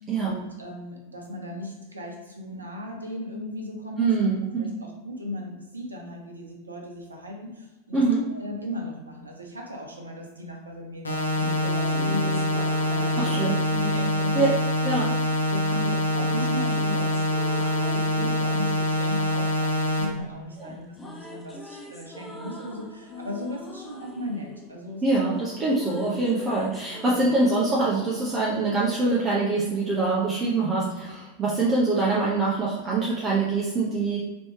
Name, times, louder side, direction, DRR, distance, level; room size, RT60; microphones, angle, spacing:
voice 1, 0.2-4.3 4.6-8.0 8.3-14.5 15.5-17.2 17.5-17.6 17.9-25.0 27.1-27.3, left 1 dB, 75° right, 1 dB, 0.8 m, -36 dB
voice 2, 4.0-4.7 7.9-8.2 13.2-13.5 14.3-14.5 14.8-15.2 20.6-20.7 25.0-34.2, right 3 dB, 20° right, -6 dB, 0.8 m, -24 dB
sound 1, 11.0-20.0, left 1 dB, 75° left, 0.7 m, -25 dB
sound 2, 11.2-15.3 16.1-20.3 20.6-29.1, equal, 15° left, 0.6 m, -43 dB
4.2 x 3.1 x 3.2 m, 1.1 s
figure-of-eight pair, 90°, 0 cm